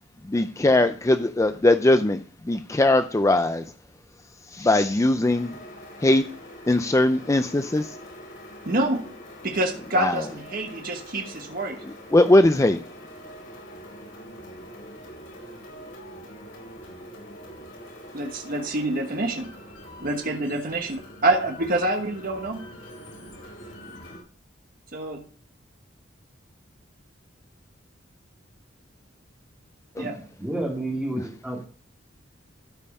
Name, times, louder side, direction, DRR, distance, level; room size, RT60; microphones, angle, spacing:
voice 1, 0.3-2.2 2.5-3.6 4.5-5.5 6.0-6.2 6.7-7.9 10.0-10.2 12.1-12.8 30.0-30.1, left 2 dB, 15° left, 0.4 m, -20 dB
sound 1, 5.2-24.2, equal, 75° left, 4.4 m, -44 dB
voice 2, 8.6-9.0 9.4-11.8 18.1-19.5 20.0-22.7 24.9-25.2 30.0-30.2, right 2 dB, 45° right, 1.2 m, -26 dB
voice 3, 30.4-31.7, right 1 dB, 5° right, 2.5 m, -30 dB
12.5 x 5.5 x 5.4 m
head